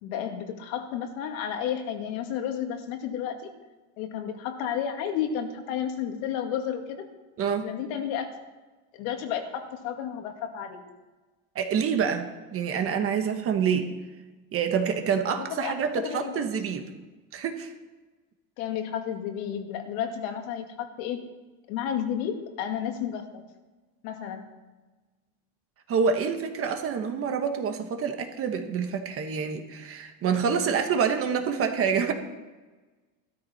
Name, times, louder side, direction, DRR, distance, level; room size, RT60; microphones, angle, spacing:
voice 1, 0.0-3.4 4.0-7.1 7.6-8.3 8.9-10.8 15.3-16.6 18.6-21.2 21.7-23.4 24.0-24.5, left 9 dB, 70° left, 5 dB, 2.1 m, -32 dB
voice 2, 7.4-7.7 11.5-13.9 14.5-16.8 17.3-17.7 25.9-32.1, right 6 dB, 35° right, 6 dB, 1.4 m, -27 dB
16.0 x 13.0 x 4.3 m, 1.2 s
cardioid pair, 150°, 41 cm